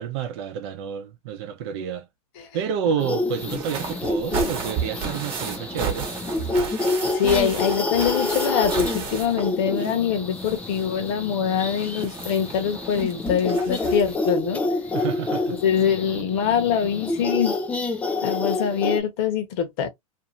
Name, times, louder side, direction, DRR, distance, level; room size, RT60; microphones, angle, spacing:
voice 1, 0.0-2.1 2.5-6.1 14.9-15.6, right 7 dB, 45° right, 0.7 m, -29 dB
sound 1, 3.0-19.0, left 2 dB, 5° left, 0.4 m, -28 dB
sound 2, 3.3-10.1 10.3-14.3 15.4-15.5 15.8-15.9, right 6 dB, 30° right, 1.1 m, -33 dB
voice 2, 7.1-14.6 15.6-17.5 18.2-19.9, left 8 dB, 45° left, 1.0 m, -24 dB
2.7 x 2.6 x 2.6 m
hypercardioid pair, 135°, 19 cm